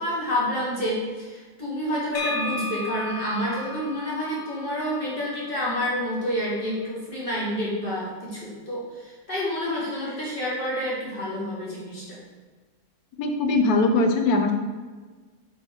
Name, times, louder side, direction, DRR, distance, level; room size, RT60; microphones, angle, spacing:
voice 1, 0.0-12.2, equal, 35° left, -7 dB, 2.4 m, -28 dB
sound 1, 2.1-5.9, left 2 dB, 60° left, 1.0 m, -35 dB
voice 2, 13.2-14.5, left 2 dB, 80° left, 4 dB, 1.2 m, -21 dB
5.3 x 4.7 x 5.1 m, 1.4 s
omnidirectional pair, 1.6 m